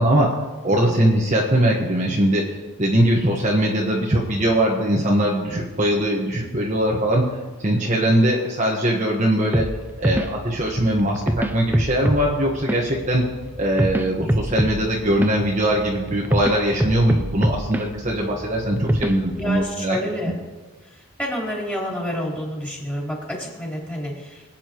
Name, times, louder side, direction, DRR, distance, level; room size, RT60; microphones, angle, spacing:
voice 1, 0.0-7.3 7.6-9.7 10.0-13.2 13.5-20.0, right 1 dB, 35° right, -2 dB, 1.3 m, -21 dB
sound 1, 9.5-19.6, right 1 dB, 10° right, 0.4 m, -25 dB
voice 2, 19.3-20.4 20.9-24.4, left 1 dB, 10° left, -4 dB, 3.7 m, -29 dB
25.5 x 8.9 x 3.0 m, 1.3 s
head